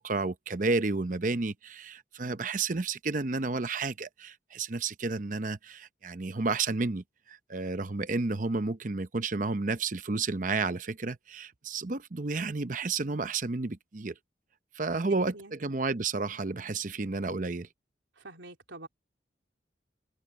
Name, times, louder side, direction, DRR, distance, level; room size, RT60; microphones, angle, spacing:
voice 1, 0.0-14.1 14.7-17.7, right 3 dB, 45° right, 0.7 m, -31 dB
voice 2, 15.2-15.6 18.2-18.9, right 2 dB, 85° right, 3.6 m, -45 dB
open air
head